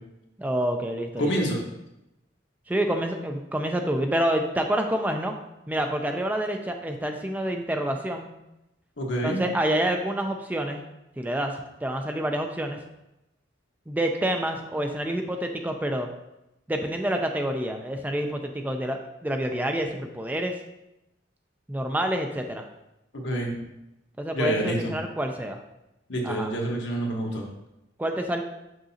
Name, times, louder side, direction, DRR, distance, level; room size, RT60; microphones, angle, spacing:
voice 1, 0.4-1.3 2.7-5.4 5.7-8.3 9.2-10.8 11.2-12.8 13.9-16.1 16.7-20.6 21.7-22.7 24.2-25.6 26.2-26.5 28.0-28.4, right 1 dB, 10° right, 4 dB, 0.3 m, -28 dB
voice 2, 1.2-1.6 9.0-9.5 23.1-23.5 24.3-24.9 26.1-27.4, right 1 dB, 75° left, -1 dB, 1.3 m, -27 dB
6.3 x 5.9 x 2.7 m, 0.90 s
head